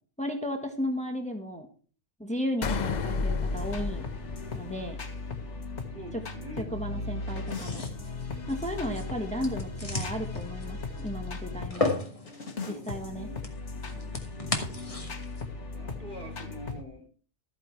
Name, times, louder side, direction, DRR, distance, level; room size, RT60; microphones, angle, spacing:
voice 1, 0.2-1.7 2.2-4.0 4.5-5.0 6.6-7.8 8.5-11.9 12.6-13.3, left 1 dB, 5° left, 4 dB, 1.5 m, -34 dB
sound 1, 2.6-5.2, left 4 dB, 45° left, 0.7 m, -31 dB
sound 2, 3.5-11.7 12.3-16.8, left 3 dB, 90° left, 2.0 m, -37 dB
voice 2, 5.7-7.4 8.2-8.7 12.4-13.4 13.7-14.5 15.7-17.1, equal, 45° right, 2 dB, 2.9 m, -47 dB
sound 3, 7.4-15.4, left 2 dB, 30° left, 2.0 m, -36 dB
14.0 x 9.1 x 4.7 m, 0.41 s
omnidirectional pair, 1.2 m